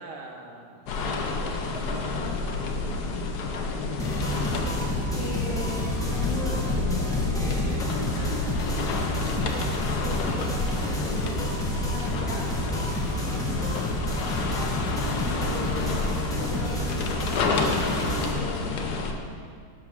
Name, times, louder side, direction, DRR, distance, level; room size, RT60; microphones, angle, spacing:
voice 1, 0.0-2.4 2.9-3.2 7.4-8.6 10.8-11.3 13.2-13.5, right 2 dB, 45° right, 0 dB, 1.3 m, -43 dB
sound 1, 0.9-19.1, left 3 dB, 60° left, 1.2 m, -29 dB
sound 2, 4.0-18.3, right 1 dB, ahead, 0.9 m, -31 dB
voice 2, 5.1-6.9 10.0-10.6 11.0-11.5 11.9-12.5 15.2-17.3 17.9-19.2, left 2 dB, 45° left, -6 dB, 1.9 m, -38 dB
12.0 x 4.8 x 6.1 m, 2.2 s
omnidirectional pair, 2.2 m